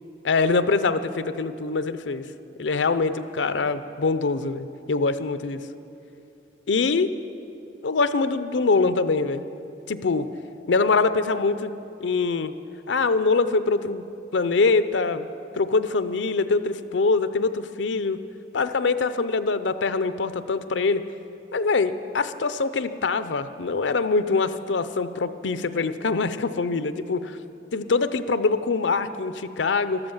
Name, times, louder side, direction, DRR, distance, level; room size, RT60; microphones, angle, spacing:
voice 1, 0.2-2.2 2.6-5.6 6.7-7.1 7.8-9.4 9.9-10.3 10.7-11.7 12.0-12.5 12.9-14.0 14.3-15.3 15.5-18.2 18.5-21.0 21.5-27.4 27.7-30.0, left 4 dB, 90° left, 12 dB, 0.6 m, -24 dB
13.0 x 13.0 x 7.3 m, 2.8 s
head